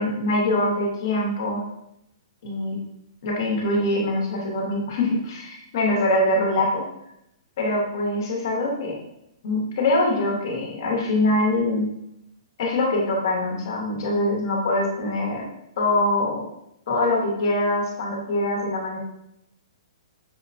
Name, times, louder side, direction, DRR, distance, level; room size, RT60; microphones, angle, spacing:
voice 1, 0.0-1.6 2.4-2.8 3.2-6.8 7.6-9.0 9.4-11.9 12.6-15.4 15.8-16.4 16.9-19.0, left 1 dB, 40° left, -2 dB, 1.0 m, -23 dB
5.8 x 2.1 x 2.6 m, 0.78 s
hypercardioid pair, 180°, 3 cm